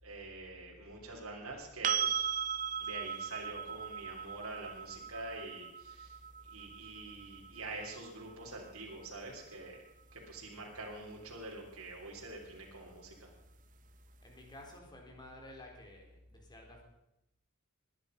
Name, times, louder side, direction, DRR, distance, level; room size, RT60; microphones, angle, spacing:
voice 1, 0.0-2.3 2.8-6.1 6.5-9.7 10.1-13.3, right 2 dB, 75° right, -2 dB, 3.4 m, -46 dB
sound 1, 1.8-9.7 12.5-12.6, right 8 dB, 40° right, 0.6 m, -38 dB
voice 2, 14.2-16.8, left 1 dB, 20° left, 1 dB, 3.7 m, -52 dB
20.5 x 10.5 x 5.3 m, 0.86 s
head